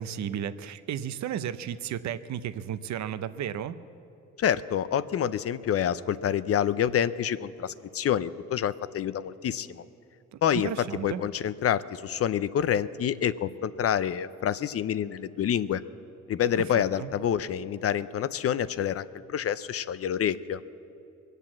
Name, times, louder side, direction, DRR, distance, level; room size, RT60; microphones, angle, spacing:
voice 1, 0.0-3.8 10.3-11.2 16.7-17.1, right 9 dB, 65° right, 13 dB, 0.7 m, -34 dB
voice 2, 4.4-9.8 10.4-15.8 16.3-20.6, left 9 dB, 50° left, 16 dB, 0.6 m, -27 dB
21.5 x 8.2 x 7.4 m, 2.7 s
cardioid pair, 90°, 30 cm